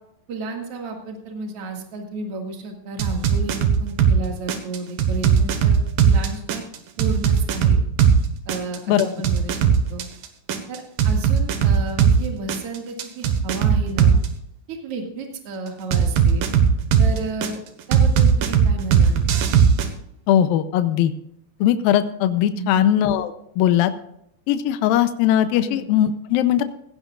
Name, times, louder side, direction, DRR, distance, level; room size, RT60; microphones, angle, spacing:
voice 1, 0.3-5.8 6.0-6.6 7.0-7.8 8.5-10.1 10.7-14.2 14.7-16.4 17.0-17.6 17.9-19.2 22.5-22.8 25.6-25.8, right 3 dB, 45° right, 2 dB, 2.7 m, -32 dB
sound 1, 3.0-4.2 4.5-8.2 8.5-12.2 12.5-14.3 15.9-17.5 17.9-19.9, right 7 dB, 75° right, 3.0 m, -17 dB
voice 2, 20.3-21.1 21.6-23.9 24.5-26.6, left 11 dB, 80° left, 10 dB, 2.5 m, -19 dB
17.0 x 15.5 x 2.5 m, 0.72 s
omnidirectional pair, 4.2 m